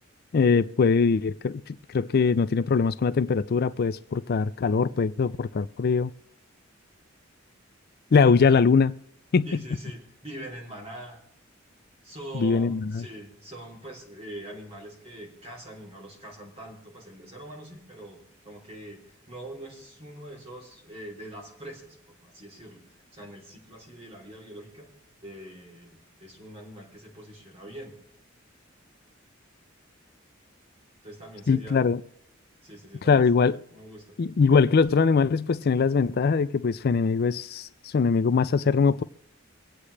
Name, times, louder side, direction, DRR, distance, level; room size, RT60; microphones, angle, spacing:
voice 1, 0.3-6.1 8.1-8.9 9.3-9.5 12.3-13.1 31.5-32.0 33.1-33.6 34.2-39.0, left 5 dB, 50° left, 0.4 m, -22 dB
voice 2, 9.4-11.2 12.0-22.0 22.2-22.8 23.1-24.9 25.2-28.0 31.0-31.8 32.6-33.3 33.7-34.2, right 1 dB, 30° right, 3.3 m, -43 dB
24.5 x 8.4 x 3.3 m
head